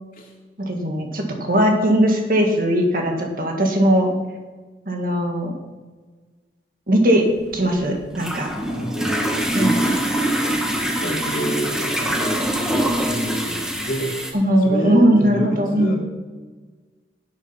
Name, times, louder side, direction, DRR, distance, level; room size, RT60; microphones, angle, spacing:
voice 1, 0.6-4.1 4.9-5.5 6.9-7.2 7.5-8.5 9.6-9.8 14.3-15.9, equal, 50° right, 2 dB, 2.0 m, -19 dB
toilet far, 7.3-14.3, right 1 dB, 5° right, 1.3 m, -24 dB
voice 2, 8.6-9.7 10.0-14.2 14.6-15.9, equal, 50° left, -1 dB, 2.8 m, -29 dB
10.5 x 8.9 x 5.8 m, 1.4 s
head